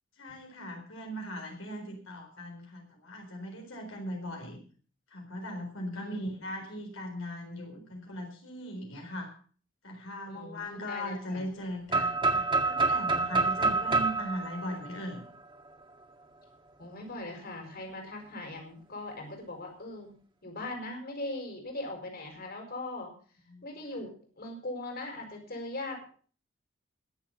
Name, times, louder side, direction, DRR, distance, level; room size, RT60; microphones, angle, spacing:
voice 1, 0.2-4.6 5.1-9.3 9.8-15.2 23.5-23.7 23.9-24.0, equal, 85° left, 2 dB, 4.1 m, -39 dB
voice 2, 10.3-11.4 16.8-20.1 20.4-23.1 23.6-26.1, left 2 dB, 50° left, 3 dB, 4.9 m, -40 dB
sound 1, 11.9-15.7, right 3 dB, 25° right, 2.0 m, -28 dB
21.5 x 7.4 x 5.4 m, 0.42 s
head